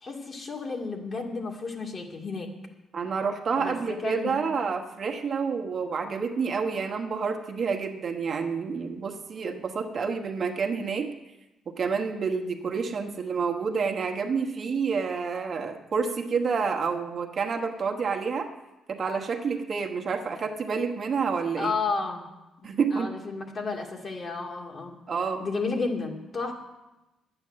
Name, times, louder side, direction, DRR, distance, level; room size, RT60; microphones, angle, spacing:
voice 1, 0.0-2.5 3.6-4.4 21.6-22.3 22.6-25.0 25.4-26.5, left 4 dB, 40° left, 1 dB, 2.2 m, -32 dB
voice 2, 2.9-11.1 11.7-18.5 18.9-21.7 22.6-23.1 25.1-25.5, right 5 dB, 50° right, 4 dB, 1.2 m, -29 dB
10.5 x 8.9 x 7.4 m, 1.0 s
cardioid pair, 90°, 0 cm